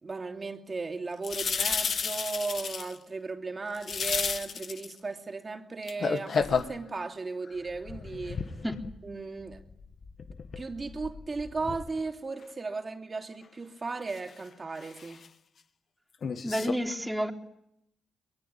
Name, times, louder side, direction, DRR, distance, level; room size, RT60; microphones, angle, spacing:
voice 1, 0.0-8.5 9.0-9.6 10.6-15.2, right 3 dB, 40° right, 3.0 m, -36 dB
sound 1, 1.2-3.0 3.7-4.9 5.8-6.8 7.5-9.2 9.5-12.0 12.4-12.5 14.1-14.3 14.8-15.3 16.2-16.7, left 6 dB, 55° left, 1.8 m, -33 dB
voice 2, 16.4-17.3, equal, 5° right, 3.8 m, -29 dB
24.0 x 22.5 x 10.0 m
hypercardioid pair, 45°, 0 cm